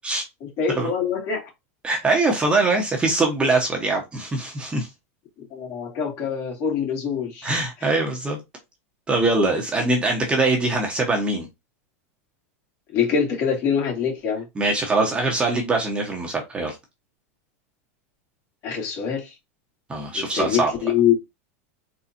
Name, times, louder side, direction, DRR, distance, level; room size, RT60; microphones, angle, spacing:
voice 1, 0.4-1.5 5.4-7.5 7.8-7.9 12.9-14.5 18.6-19.3 20.1-21.1, left 7 dB, 45° left, 2.4 m, -24 dB
voice 2, 1.8-4.9 7.4-8.4 9.1-11.5 14.6-16.8 19.9-20.7, right 2 dB, 15° right, 1.2 m, -22 dB
4.2 x 4.0 x 2.8 m
supercardioid pair, 140°, 7 cm